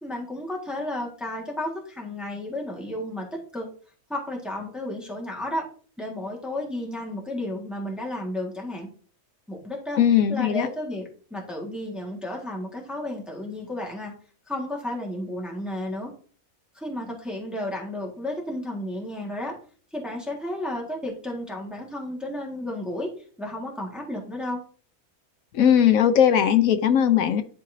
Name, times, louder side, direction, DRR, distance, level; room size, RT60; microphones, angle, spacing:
voice 1, 0.0-3.7 4.1-5.7 6.0-8.9 9.5-10.0 10.3-14.1 14.5-16.1 16.7-19.5 19.9-23.1 23.4-24.6, left 1 dB, ahead, -1 dB, 1.5 m, -32 dB
voice 2, 10.0-10.7 25.5-27.4, left 9 dB, 75° left, 10 dB, 1.0 m, -19 dB
11.5 x 4.1 x 2.6 m, 0.42 s
omnidirectional pair, 1.5 m